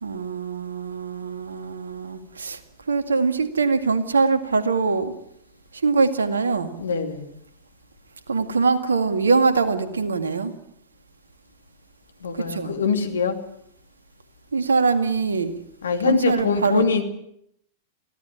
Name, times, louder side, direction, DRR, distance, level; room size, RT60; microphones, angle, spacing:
voice 1, 0.0-2.6 2.9-5.1 5.7-6.8 8.3-10.5 12.3-12.8 14.5-15.5 16.0-16.9, right 4 dB, 80° right, 10 dB, 2.0 m, -23 dB
voice 2, 6.8-7.3 12.2-13.4 15.8-17.0, left 5 dB, 75° left, 6 dB, 2.8 m, -23 dB
23.0 x 16.5 x 8.8 m, 0.74 s
figure-of-eight pair, 95°, 0 cm